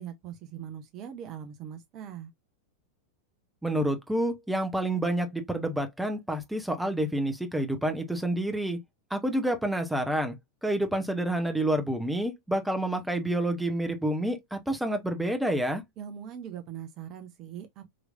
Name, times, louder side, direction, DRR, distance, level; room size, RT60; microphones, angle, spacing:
voice 1, 0.0-2.3 16.0-17.9, right 9 dB, 35° right, 0.7 m, -41 dB
voice 2, 3.6-8.8 9.1-10.4 10.6-15.8, right 1 dB, 5° right, 0.9 m, -28 dB
5.0 x 3.1 x 2.5 m
figure-of-eight pair, 90°, 0 cm